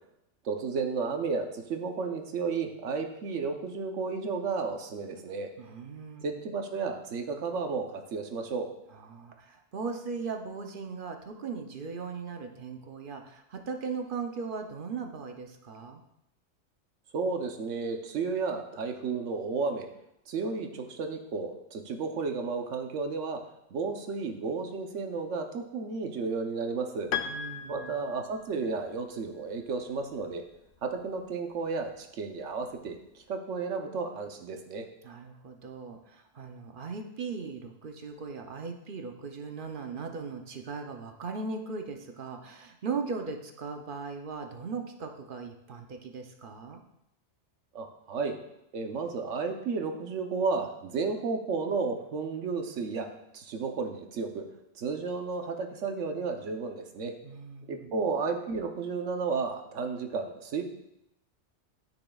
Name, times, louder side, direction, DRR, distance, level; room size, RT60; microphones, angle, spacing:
voice 1, 0.4-5.5 6.2-8.7 17.1-19.9 20.3-23.4 23.7-27.1 27.7-30.4 30.8-34.9 47.7-48.4 48.7-53.1 53.3-54.4 54.8-57.1 57.7-60.6, right 4 dB, 80° right, 5 dB, 1.2 m, -32 dB
voice 2, 5.6-6.4 8.9-16.0 27.2-27.9 35.0-46.8 57.2-57.9, right 4 dB, 50° right, 4 dB, 0.8 m, -38 dB
Piano, 27.1-28.8, left 8 dB, 60° left, 0.6 m, -36 dB
12.0 x 6.0 x 2.3 m, 0.83 s
omnidirectional pair, 1.2 m